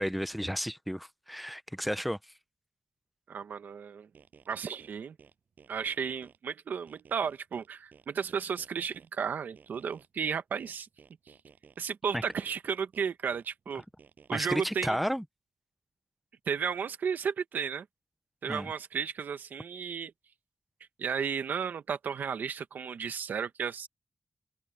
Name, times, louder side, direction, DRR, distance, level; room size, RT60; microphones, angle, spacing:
voice 1, 0.0-2.2 12.1-12.2 14.3-15.2 18.5-18.7, equal, ahead, 0.7 m, -32 dB
voice 2, 3.3-4.1 4.5-5.2 5.7-10.9 11.3-11.4 11.8-13.8 14.3-15.0 16.5-17.9 18.4-20.1 21.0-23.9, right 6 dB, 85° right, 1.3 m, -33 dB
sound 1, 4.1-6.4 6.9-9.1 9.6-11.8 12.3-14.5, right 6 dB, 70° right, 6.4 m, -57 dB
wide cardioid pair, 120°, 3 cm